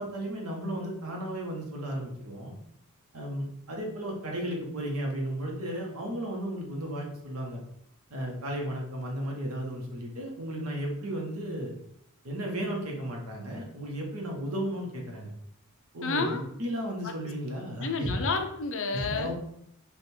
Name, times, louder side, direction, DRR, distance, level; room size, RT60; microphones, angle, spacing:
voice 1, 0.0-2.5 3.1-7.6 8.1-11.7 12.2-15.3 15.9-18.1 18.9-19.3, right 1 dB, 80° right, 0 dB, 1.2 m, -34 dB
voice 2, 16.0-16.4 17.0-17.2 17.8-19.3, left 4 dB, 60° left, 5 dB, 0.6 m, -30 dB
3.5 x 2.5 x 4.4 m, 0.74 s
head